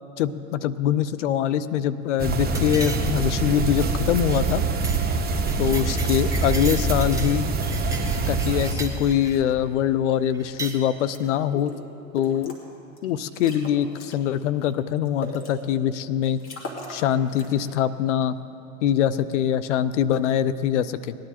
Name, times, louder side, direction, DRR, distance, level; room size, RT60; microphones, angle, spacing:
voice 1, 0.2-4.6 5.6-7.5 8.3-11.7 12.1-12.5 13.0-16.4 16.9-18.4 18.8-21.1, left 10 dB, 70° left, 14 dB, 0.6 m, -23 dB
sound 1, 2.2-8.8, right 4 dB, 25° right, 1.3 m, -25 dB
sound 2, 2.5-3.3 3.6-3.9 4.2-4.5 4.8-5.0 5.3-7.3 7.6-9.4 10.3-10.8, right 3 dB, 10° right, 1.4 m, -36 dB
sound 3, 11.1-11.2 11.5-11.7 12.2-12.6 13.0-13.1 13.3-14.1 14.6-15.5 16.0-16.1 16.4-17.0 17.3-17.7, left 2 dB, 35° left, 2.7 m, -37 dB
19.0 x 10.5 x 4.2 m, 2.8 s
hypercardioid pair, 85°, 38 cm